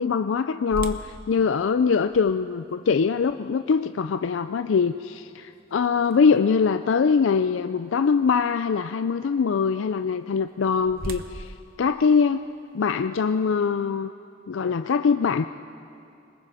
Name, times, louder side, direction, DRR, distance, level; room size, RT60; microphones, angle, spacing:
voice 1, 0.0-12.5 12.7-14.1 14.5-15.5, left 5 dB, 80° left, 10 dB, 0.4 m, -23 dB
sound 1, 0.7-6.7 7.2-7.3 7.9-8.1 10.2-12.9, right 2 dB, 50° right, 0.9 m, -41 dB
26.5 x 20.5 x 4.9 m, 2.7 s
head